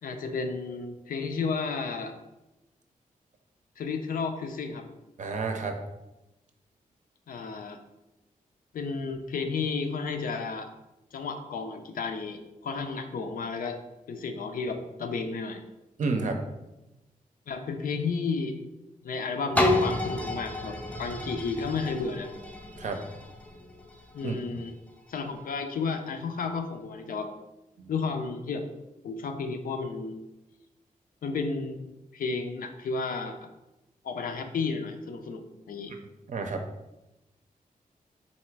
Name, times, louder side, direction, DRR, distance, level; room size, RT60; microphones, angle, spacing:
voice 1, 0.0-2.1 3.8-4.9 7.3-7.8 8.7-10.7 11.1-13.8 14.1-15.6 17.5-18.6 19.0-22.3 24.1-24.7 25.1-27.3 27.9-28.7 29.0-30.2 31.2-31.8 32.1-33.5 34.0-35.9, left 4 dB, 80° left, 6 dB, 0.5 m, -32 dB
voice 2, 5.2-5.8 16.0-16.4 22.8-23.0 24.2-24.3 27.8-27.9 36.3-36.6, right 4 dB, 60° right, 4 dB, 0.5 m, -30 dB
sound 1, 19.6-25.3 25.9-26.0, left 1 dB, 10° left, 0.4 m, -31 dB
4.1 x 2.4 x 4.5 m, 0.97 s
wide cardioid pair, 150°, 14 cm